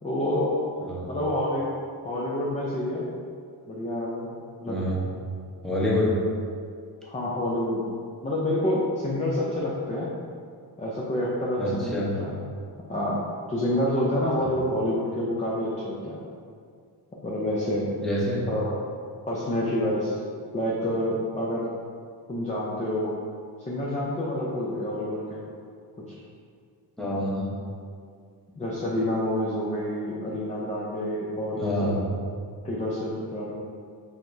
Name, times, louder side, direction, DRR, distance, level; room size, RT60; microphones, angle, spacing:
voice 1, 0.0-0.7 1.1-1.7 2.0-3.0 3.6-4.3 4.6-4.8 7.0-7.8 8.2-10.1 10.8-12.3 12.9-13.2 13.5-16.2 17.2-17.9 18.5-18.8 19.3-20.2 20.5-21.7 22.3-23.2 23.7-25.4 28.6-31.9 32.6-33.5, left 1 dB, 15° left, -6 dB, 0.4 m, -28 dB
voice 2, 4.7-5.0 5.6-6.1 11.6-12.1 18.0-18.4 27.0-27.5 31.5-32.0, left 1 dB, ahead, -7 dB, 0.9 m, -26 dB
4.7 x 3.5 x 2.6 m, 2.2 s
wide cardioid pair, 140°, 44 cm